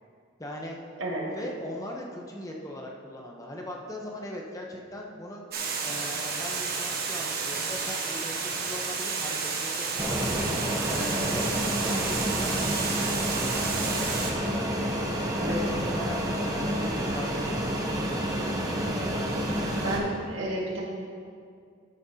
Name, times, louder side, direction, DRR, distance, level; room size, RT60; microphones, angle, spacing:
voice 1, 0.4-0.8 1.3-5.5 5.8-11.5 11.8-15.0 15.3-18.9, left 1 dB, 15° left, -1 dB, 0.8 m, -40 dB
Water, 5.5-14.3, right 4 dB, 50° right, 1.2 m, -31 dB
Fixed-wing aircraft airplane, 10.0-20.0, equal, 15° right, 0.9 m, -29 dB
voice 2, 19.8-20.8, right 2 dB, 75° right, -3 dB, 1.9 m, -31 dB
13.0 x 9.2 x 2.8 m, 2.2 s
head